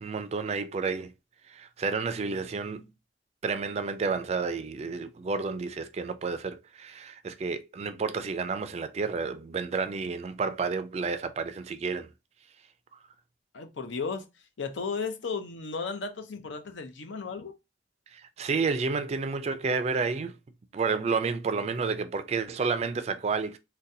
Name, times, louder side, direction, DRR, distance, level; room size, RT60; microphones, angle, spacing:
voice 1, 0.0-1.1 1.5-2.9 3.4-12.1 18.1-20.3 20.7-23.6, right 4 dB, 35° right, 0.3 m, -30 dB
voice 2, 13.5-14.3 14.6-17.6, left 5 dB, 85° left, 0.6 m, -34 dB
3.9 x 2.2 x 2.6 m
head